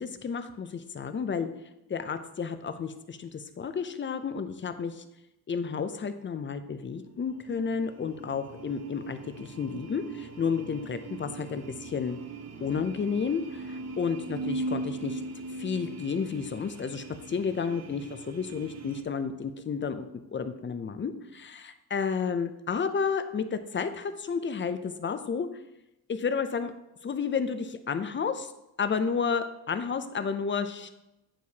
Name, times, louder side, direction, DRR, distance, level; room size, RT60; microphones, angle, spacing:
voice 1, 0.0-1.5 1.9-5.0 5.5-12.2 12.6-15.2 15.6-25.5 26.1-26.7 27.0-28.5 28.8-30.9, left 6 dB, 30° left, 10 dB, 0.4 m, -31 dB
sound 1, 6.9-19.0, right 2 dB, 40° right, 0.7 m, -40 dB
8.9 x 4.7 x 2.8 m, 0.91 s
wide cardioid pair, 130°, 41 cm